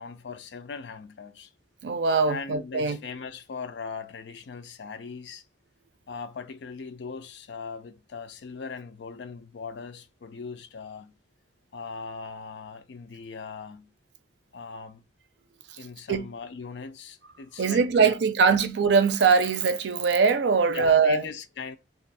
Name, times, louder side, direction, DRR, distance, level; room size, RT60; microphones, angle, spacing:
voice 1, 0.0-1.5 2.3-5.4 6.1-11.1 11.7-13.9 14.5-15.0 15.8-18.2 20.7-21.8, left 5 dB, 75° left, 0.4 m, -39 dB
voice 2, 1.8-3.0 16.1-16.2 17.6-21.3, right 5 dB, 75° right, 0.4 m, -22 dB
2.6 x 2.4 x 4.0 m
head